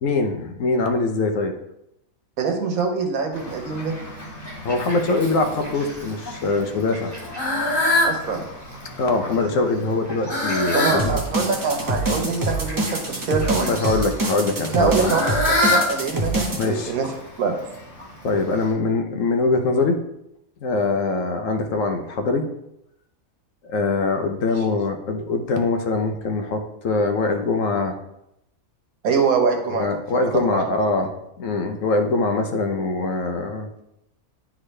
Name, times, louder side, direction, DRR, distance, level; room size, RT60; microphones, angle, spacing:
voice 1, 0.0-1.5 4.6-7.1 9.0-11.0 13.7-15.1 16.6-16.9 18.2-20.0 20.6-22.5 23.7-28.0 29.7-31.1 31.4-33.7, left 3 dB, 70° left, 5 dB, 1.2 m, -23 dB
voice 2, 2.4-3.9 8.0-8.4 10.7-13.7 14.7-17.1 17.4-17.5 29.0-29.9 30.1-30.2, right 5 dB, 85° right, 3 dB, 1.5 m, -24 dB
Fowl, 3.3-18.7, left 1 dB, 15° left, 2.0 m, -28 dB
sound 1, 11.0-16.7, right 1 dB, 20° right, 0.7 m, -25 dB
10.0 x 3.7 x 3.3 m, 0.82 s
omnidirectional pair, 1.5 m